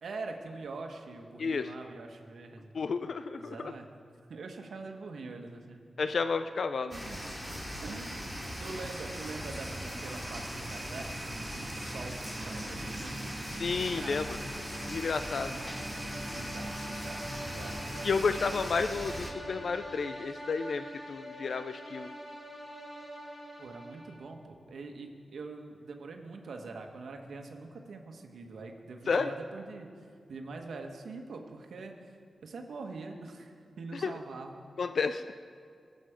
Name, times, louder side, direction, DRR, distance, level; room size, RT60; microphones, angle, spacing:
voice 1, 0.0-2.7 3.4-3.9 4.3-5.8 6.8-7.2 7.8-13.3 14.0-14.2 15.5-15.7 16.2-17.9 23.6-30.0 30.3-32.0 32.4-34.7, right 3 dB, 90° right, 3 dB, 1.4 m, -44 dB
voice 2, 1.4-1.7 2.7-3.6 6.0-6.9 13.5-14.4 14.9-15.5 18.0-22.1 29.1-29.3 33.9-34.1 34.8-35.2, left 4 dB, 70° left, 10 dB, 0.4 m, -31 dB
sound 1, 6.9-19.3, equal, 15° left, 2.5 m, -40 dB
sound 2, 7.0-18.7, right 2 dB, 25° right, 0.7 m, -44 dB
sound 3, 13.4-24.4, equal, 40° left, 3.9 m, -45 dB
22.5 x 7.9 x 5.1 m, 2.3 s
wide cardioid pair, 90°, 0 cm